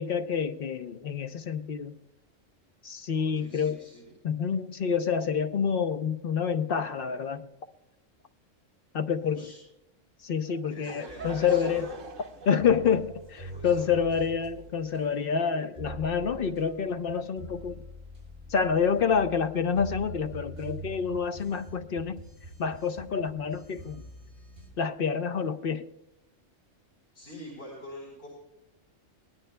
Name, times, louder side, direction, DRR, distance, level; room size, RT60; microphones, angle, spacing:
voice 1, 0.0-1.9 2.8-3.8 4.2-7.5 8.9-9.4 10.2-11.9 12.4-17.8 18.5-22.2 22.6-24.0 24.8-25.9, left 6 dB, 55° left, 8 dB, 0.8 m, -28 dB
voice 2, 3.1-4.1 9.0-9.6 10.7-11.9 13.4-14.0 27.1-28.3, left 1 dB, 70° left, -4 dB, 4.7 m, -45 dB
Laughter / Crowd, 10.4-15.1, right 5 dB, 85° right, 1.6 m, -45 dB
sound 1, 11.1-24.7, right 2 dB, 30° right, 7.1 m, -45 dB
23.5 x 18.5 x 2.2 m, 0.91 s
omnidirectional pair, 1.3 m